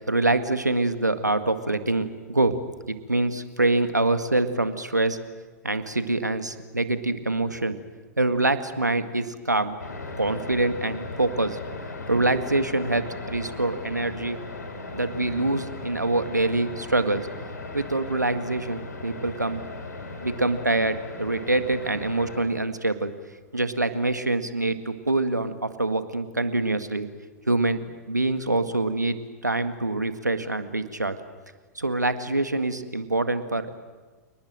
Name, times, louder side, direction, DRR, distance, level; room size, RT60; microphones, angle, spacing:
voice 1, 0.1-2.6 2.9-5.2 5.6-7.8 8.2-9.8 10.1-11.6 12.1-14.4 14.9-17.3 17.7-19.6 20.2-23.1 23.5-27.1 27.5-29.2 29.4-31.2 31.8-33.8, right 2 dB, 90° right, 10 dB, 1.8 m, -25 dB
sound 1, 9.8-22.4, left 3 dB, 80° left, 4.2 m, -37 dB
29.5 x 19.5 x 9.0 m, 1.4 s
figure-of-eight pair, 100°, 9 cm